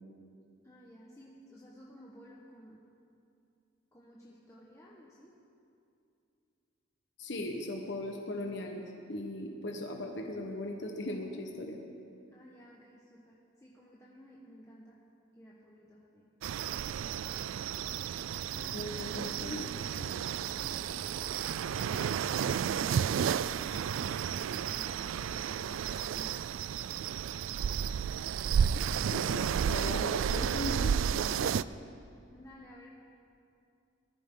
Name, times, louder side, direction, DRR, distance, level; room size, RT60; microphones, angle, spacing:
voice 1, 0.6-2.8 3.9-5.4 12.3-15.0 15.3-16.3 16.9-17.5 18.5-18.9 19.2-26.9 32.3-32.9, equal, 15° left, -5 dB, 1.2 m, -54 dB
voice 2, 7.2-11.8 18.7-19.7 29.1-31.5, left 1 dB, 60° left, 2 dB, 1.2 m, -38 dB
sound 1, 16.4-31.6, right 8 dB, 85° right, 0.3 m, -32 dB
20.0 x 14.0 x 3.8 m, 2.6 s
head